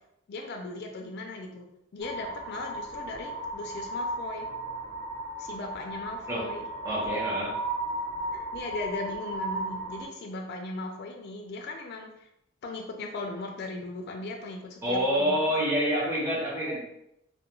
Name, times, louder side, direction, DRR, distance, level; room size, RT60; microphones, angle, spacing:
voice 1, 0.3-1.7 1.9-4.4 5.4-6.7 7.0-7.2 8.3-12.3 12.6-15.6, left 2 dB, 55° left, 2 dB, 0.4 m, -38 dB
sound 1, 2.0-10.1, right 1 dB, 55° right, 0.8 m, -35 dB
voice 2, 6.8-7.6 14.8-16.8, equal, 15° right, -7 dB, 0.8 m, -27 dB
2.3 x 2.2 x 3.0 m, 0.80 s
head